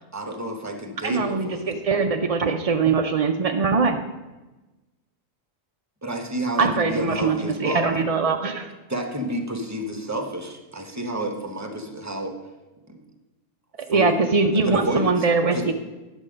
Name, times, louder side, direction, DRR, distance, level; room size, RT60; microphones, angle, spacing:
voice 1, 0.1-1.8 6.0-7.9 8.9-12.3 12.9-13.0 13.9-14.2 14.6-15.2 15.5-15.7, equal, 15° right, 4 dB, 1.0 m, -30 dB
voice 2, 1.0-4.0 6.6-8.7 13.9-15.7, right 4 dB, 70° right, 5 dB, 0.3 m, -22 dB
9.8 x 7.1 x 5.1 m, 1.1 s
omnidirectional pair, 1.4 m